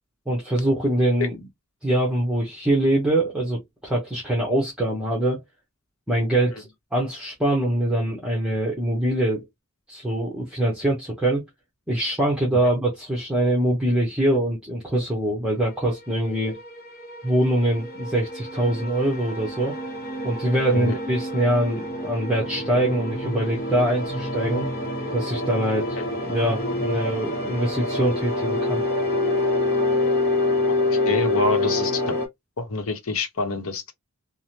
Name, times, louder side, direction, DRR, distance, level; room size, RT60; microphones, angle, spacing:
voice 1, 0.3-1.4 1.8-5.4 6.1-9.4 9.9-11.4 11.9-16.6 17.2-19.8 20.2-24.7 25.1-28.8, right 1 dB, 5° right, 0.8 m, -23 dB
sound 1, 16.1-32.3, left 2 dB, 45° left, 1.0 m, -27 dB
voice 2, 30.9-32.0 32.6-33.9, left 3 dB, 75° left, 0.9 m, -26 dB
3.3 x 2.1 x 2.8 m
head